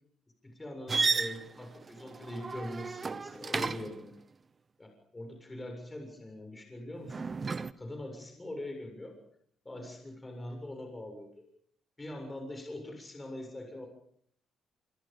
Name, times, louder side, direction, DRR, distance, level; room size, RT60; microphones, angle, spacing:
voice 1, 0.4-4.1 4.8-7.4 7.8-9.2 9.6-11.5 12.0-13.9, left 1 dB, 20° left, 4 dB, 7.1 m, -42 dB
sound 1, 0.9-4.1 7.1-7.7, right 4 dB, 35° right, 0.9 m, -33 dB
26.0 x 25.5 x 5.5 m, 0.65 s
cardioid pair, 90°, 0 cm